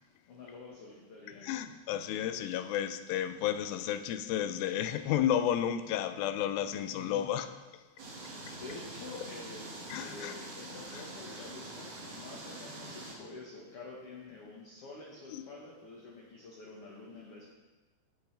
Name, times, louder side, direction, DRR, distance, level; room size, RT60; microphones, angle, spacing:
voice 1, 0.3-1.5 6.9-7.4 8.5-17.6, left 3 dB, 55° left, 1.7 m, -48 dB
voice 2, 1.4-7.5 8.5-8.6 9.9-10.4 15.3-15.5, left 10 dB, 85° left, 2.3 m, -32 dB
sound 1, 8.0-13.1, right 2 dB, 50° right, 2.7 m, -45 dB
18.5 x 6.2 x 3.3 m
omnidirectional pair, 4.2 m